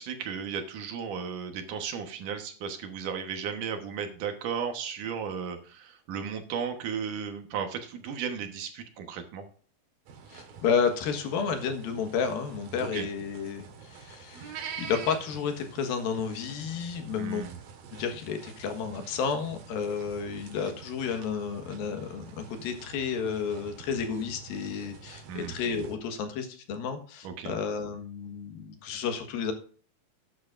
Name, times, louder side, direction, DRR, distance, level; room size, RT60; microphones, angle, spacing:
voice 1, 0.0-9.5 12.8-13.1 17.2-17.6 25.3-25.6 27.2-27.6, right 7 dB, 70° right, 6 dB, 2.6 m, -35 dB
sound 1, 10.1-26.0, right 6 dB, 85° right, 3.4 m, -46 dB
voice 2, 10.3-17.5 17.9-29.5, left 6 dB, 90° left, 6 dB, 3.3 m, -31 dB
13.0 x 9.3 x 2.6 m, 0.43 s
omnidirectional pair, 4.0 m